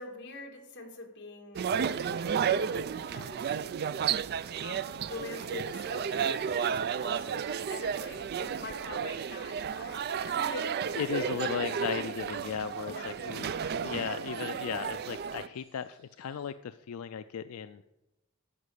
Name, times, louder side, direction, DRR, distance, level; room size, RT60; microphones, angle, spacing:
voice 1, 0.0-3.6 4.6-11.8 12.9-13.1, left 2 dB, 55° left, 2 dB, 2.0 m, -44 dB
sound 1, 1.5-15.5, right 7 dB, 50° right, 0.3 m, -32 dB
sound 2, 4.6-16.5, right 3 dB, 70° right, 4.0 m, -61 dB
voice 2, 10.9-17.9, left 8 dB, 90° left, 11 dB, 0.4 m, -36 dB
11.0 x 5.2 x 8.3 m, 0.97 s
head